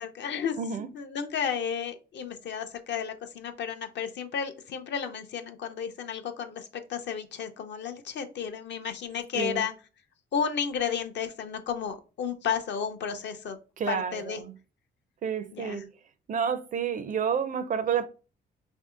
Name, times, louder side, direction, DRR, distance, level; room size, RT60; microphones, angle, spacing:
voice 1, 0.0-0.6 0.9-9.7 10.3-13.6 13.9-14.4 15.5-15.9, left 7 dB, 60° left, 0.6 m, -32 dB
voice 2, 0.6-0.9 9.3-9.6 13.8-14.5 15.2-15.9 16.3-18.1, right 7 dB, 40° right, 0.4 m, -30 dB
2.9 x 2.6 x 3.6 m
cardioid pair, 90°, 20 cm